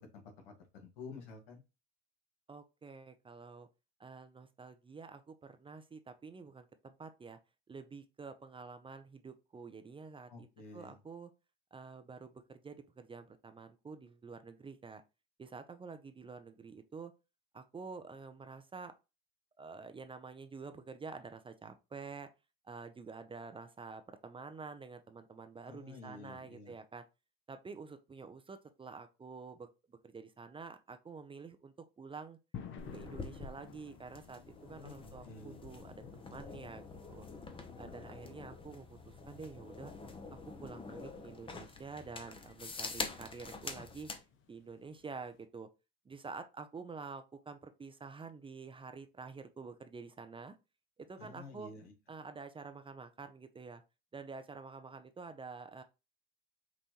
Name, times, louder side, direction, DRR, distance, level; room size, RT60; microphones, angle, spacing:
voice 1, 0.1-1.6 10.3-11.0 25.7-26.7 34.7-35.6 51.2-51.9, left 3 dB, 80° left, 1.7 m, -51 dB
voice 2, 2.5-3.7 4.0-7.4 7.7-10.5 10.7-11.3 11.7-15.0 15.4-17.1 17.5-18.9 19.6-22.3 22.6-27.0 27.5-32.4 32.9-37.3 37.8-39.9 40.3-44.1 44.5-45.7 46.1-50.6 51.0-51.7 52.1-53.8 54.1-55.8, right 4 dB, 15° right, 0.6 m, -48 dB
sound 1, 32.5-45.5, left 7 dB, 40° left, 0.9 m, -55 dB
sound 2, 32.8-44.2, left 4 dB, 15° left, 0.8 m, -46 dB
5.6 x 2.5 x 2.9 m
hypercardioid pair, 90°, 30 cm